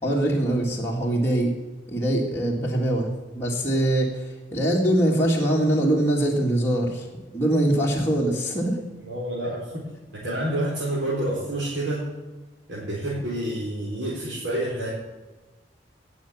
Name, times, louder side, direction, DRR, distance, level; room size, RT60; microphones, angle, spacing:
voice 1, 0.0-1.5 1.9-7.1 7.3-8.8, right 1 dB, 15° left, -4 dB, 2.2 m, -23 dB
voice 2, 9.0-12.1 12.7-14.9, right 1 dB, 75° right, -7 dB, 4.1 m, -28 dB
18.5 x 7.2 x 7.2 m, 1.2 s
head